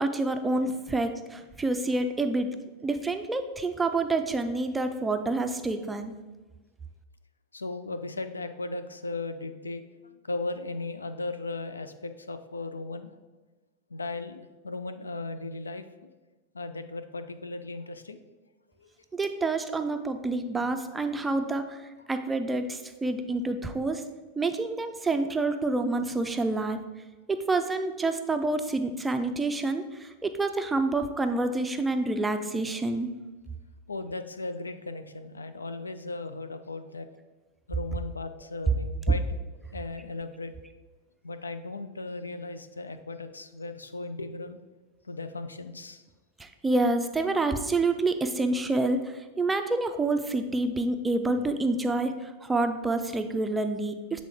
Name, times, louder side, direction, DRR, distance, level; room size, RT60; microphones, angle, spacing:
voice 1, 0.0-2.5 2.8-6.1 19.1-24.0 24.4-26.8 27.3-33.1 46.4-54.2, right 2 dB, 10° right, 7 dB, 0.4 m, -28 dB
voice 2, 7.5-13.2 13.9-16.1 16.5-18.2 18.8-18.9 33.9-37.1 37.7-39.2 39.7-40.6 41.2-44.6 45.1-46.0, left 2 dB, 75° left, 10 dB, 0.3 m, -37 dB
7.4 x 3.7 x 3.5 m, 1.2 s
figure-of-eight pair, 90°, 0 cm